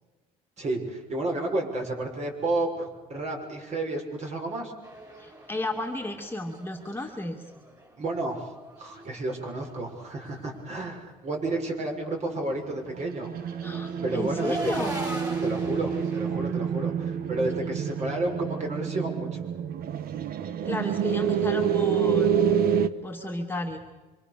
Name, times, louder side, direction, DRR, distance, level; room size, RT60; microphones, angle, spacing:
voice 1, 0.6-4.7 8.0-8.5 8.8-13.5 14.0-14.6 15.4-19.5, right 2 dB, 40° right, 2 dB, 6.4 m, -31 dB
sound 1, 4.8-8.0 8.3-10.3 10.5-10.8 11.2-11.5 13.0-16.2, right 1 dB, 20° right, 6.4 m, -40 dB
voice 2, 5.2-7.4 13.6-15.0 20.6-22.4 23.0-23.8, left 2 dB, 10° left, 1 dB, 2.4 m, -33 dB
sound 2, 12.7-22.9, right 8 dB, 60° right, 1.3 m, -28 dB
26.5 x 25.5 x 7.0 m, 1.2 s
cardioid pair, 110°, 17 cm